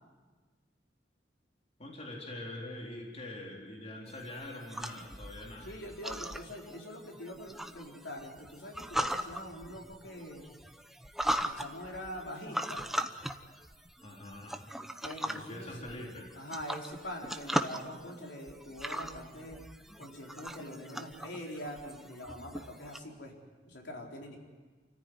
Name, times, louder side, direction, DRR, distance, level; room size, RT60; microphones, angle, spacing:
voice 1, 1.8-5.8 14.0-14.6 15.2-16.3, left 1 dB, 40° left, -2 dB, 4.1 m, -44 dB
sound 1, 4.1-23.0, equal, ahead, 0.9 m, -39 dB
voice 2, 5.6-10.5 11.4-12.9 15.0-15.9 16.3-19.6 20.0-23.3 23.6-24.4, equal, 90° left, 0 dB, 4.3 m, -44 dB
29.0 x 14.5 x 9.5 m, 1.4 s
head